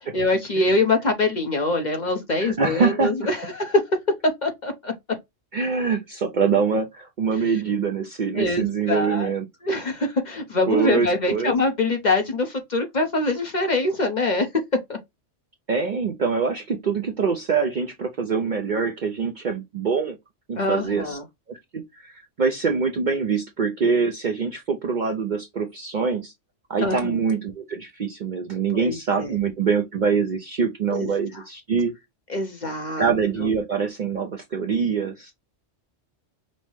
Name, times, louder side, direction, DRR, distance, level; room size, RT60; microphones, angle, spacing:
voice 1, 0.1-3.8 4.4-4.9 8.3-9.3 9.6-14.5 14.9-15.0 20.6-21.2 26.8-27.2 28.7-29.3 30.9-31.1 31.3-31.4 32.3-33.1 33.4-33.5, left 2 dB, 40° left, 0.8 m, -24 dB
voice 2, 2.4-3.1 5.5-9.5 10.7-11.5 15.7-20.2 20.5-21.2 21.5-22.1 22.4-26.3 26.7-31.9 33.0-35.3, right 5 dB, 55° right, 0.6 m, -24 dB
5.4 x 2.0 x 3.1 m
omnidirectional pair, 1.3 m